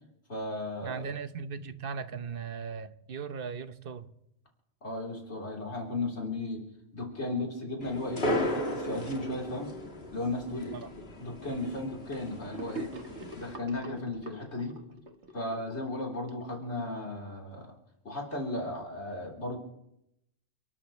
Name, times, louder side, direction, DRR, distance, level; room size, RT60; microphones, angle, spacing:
voice 1, 0.3-1.0 4.8-6.6 6.9-9.7 10.1-12.9 13.3-14.8 15.3-17.7 18.0-19.6, left 2 dB, 80° left, 4.1 m, -35 dB
voice 2, 0.8-4.1 10.7-10.9, right 6 dB, 55° right, 1.0 m, -38 dB
sound 1, 7.8-13.6, left 1 dB, 65° left, 2.2 m, -36 dB
Gurgling / Sink (filling or washing), 12.5-17.0, right 2 dB, 80° right, 1.8 m, -44 dB
29.5 x 13.0 x 3.2 m
omnidirectional pair, 1.1 m